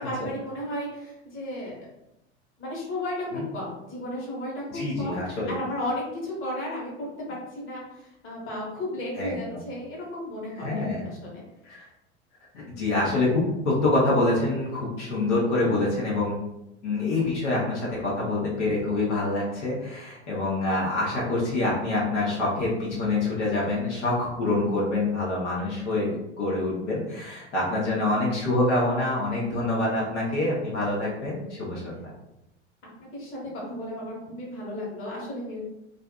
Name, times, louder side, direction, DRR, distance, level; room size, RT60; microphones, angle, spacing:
voice 1, 0.0-1.8 2.6-11.4 33.0-35.6, left 1 dB, 35° left, -4 dB, 1.2 m, -34 dB
voice 2, 4.7-5.5 9.2-9.3 10.6-11.0 11.7-11.8 12.5-13.3 13.6-16.4 16.8-32.1, left 2 dB, 80° left, -5 dB, 0.9 m, -26 dB
2.5 x 2.4 x 2.3 m, 0.87 s
hypercardioid pair, 80°, 35 cm